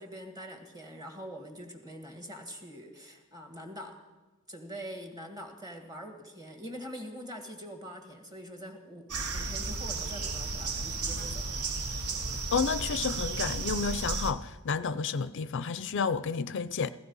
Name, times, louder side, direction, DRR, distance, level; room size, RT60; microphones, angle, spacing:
voice 1, 0.0-4.0 4.5-11.6, equal, 15° right, 1.9 m, -44 dB
sound 1, 9.1-14.3, right 3 dB, 90° right, 1.1 m, -33 dB
voice 2, 12.5-16.9, left 5 dB, 55° left, 0.5 m, -31 dB
16.0 x 15.0 x 5.5 m
head